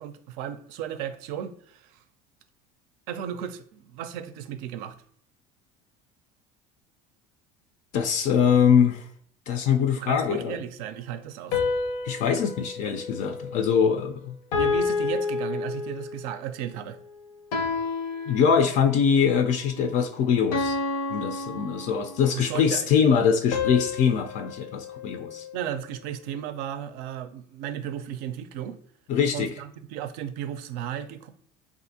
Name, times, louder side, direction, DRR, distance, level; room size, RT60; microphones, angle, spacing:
voice 1, 0.0-2.0 3.1-5.0 10.0-11.6 14.5-17.0 22.3-22.9 25.5-28.8 29.3-31.3, right 10 dB, 70° right, 0.4 m, -35 dB
voice 2, 7.9-9.0 9.5-10.5 12.0-14.4 18.3-20.8 21.1-25.5 29.1-29.5, left 7 dB, 50° left, 0.4 m, -23 dB
sound 1, 11.5-14.0 14.5-16.3 17.5-19.0 20.5-22.4 23.5-25.9, left 4 dB, 90° left, 0.7 m, -30 dB
3.5 x 2.5 x 2.7 m
supercardioid pair, 115°, 16 cm